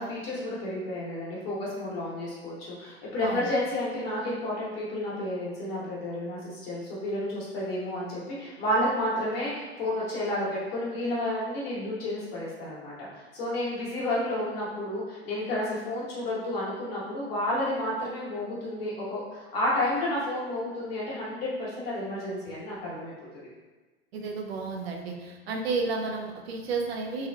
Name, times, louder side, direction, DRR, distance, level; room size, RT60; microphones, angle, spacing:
voice 1, 0.0-23.1, left 1 dB, 65° left, -6 dB, 1.2 m, -31 dB
voice 2, 24.1-27.3, right 4 dB, 70° right, 2 dB, 0.5 m, -32 dB
3.4 x 2.3 x 2.2 m, 1.2 s
figure-of-eight pair, 85°, 32 cm